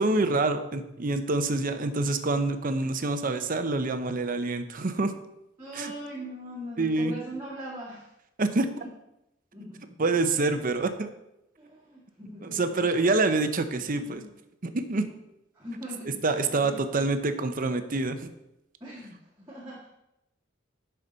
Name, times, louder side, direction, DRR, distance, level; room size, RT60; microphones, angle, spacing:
voice 1, 0.0-5.1 5.7-5.9 6.8-7.1 8.4-8.7 10.0-11.1 12.4-14.2 14.6-15.1 16.2-18.3, right 3 dB, 45° right, 9 dB, 0.7 m, -26 dB
voice 2, 5.6-8.1 8.8-8.9 9.5-10.1 11.6-12.8 13.8-14.3 15.5-16.8 18.8-19.9, equal, 15° right, -8 dB, 1.9 m, -41 dB
11.0 x 5.7 x 4.0 m, 0.88 s
head